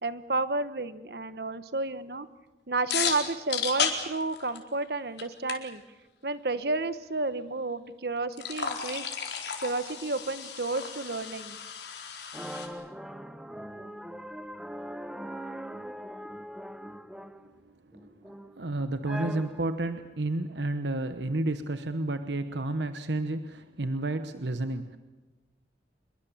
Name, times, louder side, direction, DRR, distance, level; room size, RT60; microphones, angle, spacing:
voice 1, 0.0-2.3 2.7-5.8 6.2-9.1 9.6-11.6, right 3 dB, 65° right, 13 dB, 1.2 m, -31 dB
sound 1, 2.9-4.8 5.2-5.3 5.5-5.6 8.3-12.7, left 7 dB, 80° left, 4.1 m, -33 dB
sound 2, 12.3-17.5 17.9-18.6 19.0-19.8, equal, 5° right, 0.9 m, -41 dB
voice 2, 18.6-25.0, right 2 dB, 85° right, 9 dB, 1.1 m, -31 dB
26.5 x 23.0 x 7.4 m, 1.2 s
head